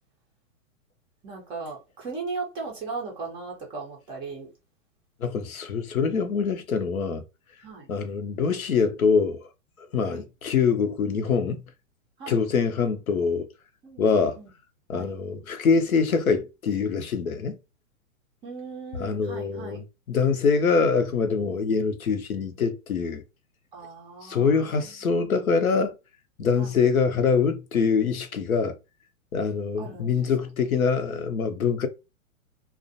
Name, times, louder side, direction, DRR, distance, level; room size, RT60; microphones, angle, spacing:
voice 1, 1.2-4.5 7.6-7.9 10.1-10.2 12.2-12.4 13.8-14.5 14.9-15.1 18.4-19.8 23.7-25.3 26.6-26.8 29.8-30.3, right 4 dB, 15° right, 0.4 m, -38 dB
voice 2, 5.2-7.2 7.9-9.5 9.9-11.6 12.3-13.5 14.0-14.4 14.9-17.6 19.0-23.2 24.2-25.9 26.4-28.8 29.3-31.9, left 5 dB, 90° left, 0.7 m, -24 dB
2.4 x 2.1 x 2.6 m
hypercardioid pair, 115°, 41 cm